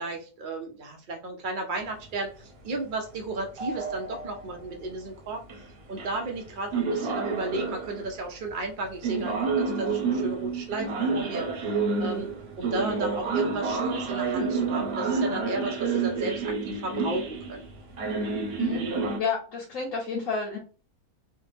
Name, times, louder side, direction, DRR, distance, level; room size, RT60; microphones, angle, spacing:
voice 1, 0.0-11.5 12.0-12.3 12.6-17.7, right 2 dB, 80° right, 3 dB, 0.4 m, -34 dB
sound 1, 3.6-4.5 5.5-5.6 6.0-6.4 6.7-8.1 9.0-19.2, right 4 dB, 50° right, 0.8 m, -29 dB
voice 2, 19.1-20.6, left 5 dB, 60° left, -4 dB, 1.2 m, -30 dB
3.3 x 2.0 x 3.2 m, 0.36 s
omnidirectional pair, 1.6 m